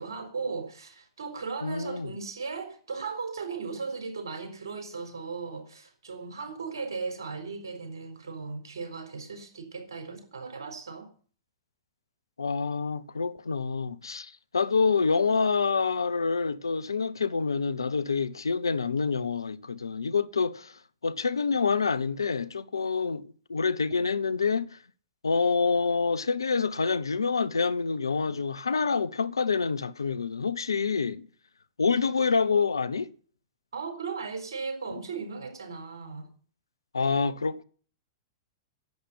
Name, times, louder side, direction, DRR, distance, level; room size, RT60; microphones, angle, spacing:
voice 1, 0.0-11.1 33.7-36.3, right 4 dB, 75° right, 4.4 m, -37 dB
voice 2, 1.6-2.1 12.4-24.8 25.2-31.2 31.8-33.1 36.9-37.6, left 5 dB, 85° left, 0.9 m, -27 dB
11.0 x 8.4 x 9.7 m
figure-of-eight pair, 105°, 2 cm